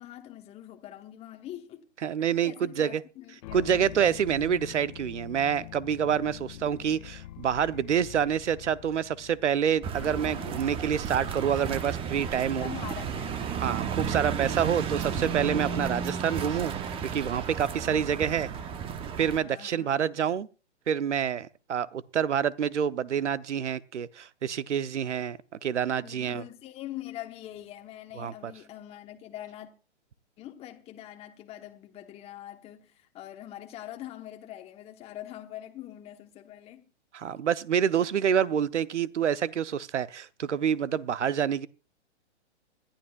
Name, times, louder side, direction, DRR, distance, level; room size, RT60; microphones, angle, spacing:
voice 1, 0.0-1.9 2.4-3.9 6.4-6.8 12.4-13.4 17.9-18.8 19.4-20.1 26.0-29.7 30.4-36.9, left 13 dB, 15° left, 1.1 m, -44 dB
voice 2, 2.0-3.0 3.5-12.7 13.6-16.7 17.1-18.5 19.2-20.5 20.9-26.4 28.2-28.5 37.1-41.7, right 8 dB, 80° right, 0.8 m, -27 dB
sound 1, 3.4-14.8, left 15 dB, 35° left, 0.7 m, -46 dB
sound 2, 9.8-19.4, right 7 dB, 15° right, 0.9 m, -33 dB
25.5 x 11.5 x 2.4 m
hypercardioid pair, 130°, 35 cm